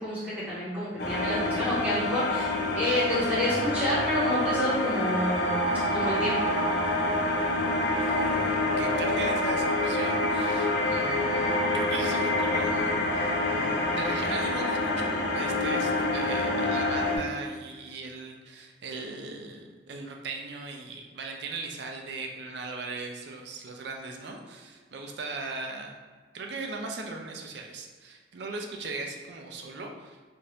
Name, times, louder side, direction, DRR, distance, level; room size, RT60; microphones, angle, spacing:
voice 1, 0.0-2.5 2.7-5.6 5.9-6.5, left 1 dB, 10° right, -11 dB, 1.2 m, -28 dB
sound 1, 1.0-17.2, left 2 dB, 55° left, 0.5 m, -27 dB
voice 2, 7.8-25.9 26.3-30.2, right 3 dB, 65° right, 2 dB, 0.4 m, -38 dB
2.7 x 2.5 x 3.2 m, 1.5 s
head